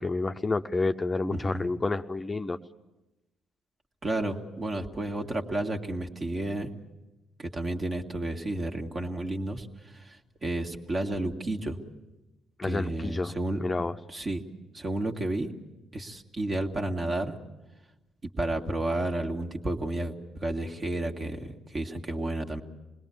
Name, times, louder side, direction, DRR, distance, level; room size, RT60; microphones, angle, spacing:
voice 1, 0.0-2.6 12.6-13.3 13.6-14.0, left 3 dB, 25° left, 8 dB, 0.7 m, -29 dB
voice 2, 1.3-1.7 4.0-6.7 7.4-11.8 12.6-13.6 14.1-14.4 14.7-15.5 15.9-17.3 18.4-22.6, right 1 dB, 40° right, 3 dB, 1.9 m, -31 dB
26.5 x 20.5 x 7.1 m, 1.1 s
hypercardioid pair, 45°, 0 cm